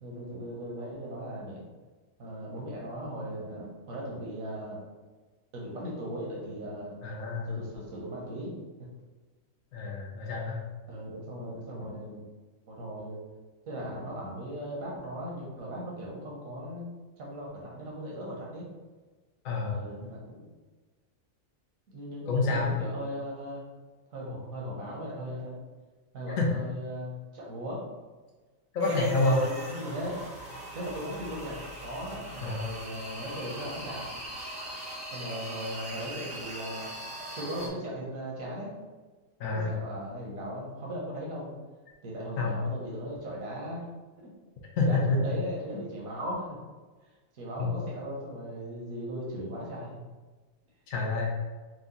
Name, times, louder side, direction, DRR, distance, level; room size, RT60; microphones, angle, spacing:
voice 1, 0.0-1.6 2.2-4.8 5.5-6.9 7.5-8.5 10.2-10.3 10.9-12.2 12.7-13.2 13.7-16.9 17.2-18.7 19.6-20.5 21.9-23.7 24.1-25.5 26.1-27.8 28.9-30.2 30.7-34.1 35.1-36.9 37.4-38.7 39.5-41.6 42.0-43.8 44.8-46.6 47.4-50.0, equal, 80° right, -4 dB, 1.5 m, -38 dB
voice 2, 7.0-7.5 9.7-10.6 19.4-19.8 22.3-22.7 26.4-26.5 28.7-29.4 32.4-32.6 39.4-39.7 42.4-42.6 44.8-45.2 45.7-45.8 47.6-47.7 50.9-51.3, left 3 dB, 75° left, -2 dB, 1.1 m, -28 dB
sound 1, 28.8-37.7, right 1 dB, 5° right, 0.7 m, -41 dB
4.9 x 2.3 x 3.9 m, 1.3 s
omnidirectional pair, 1.4 m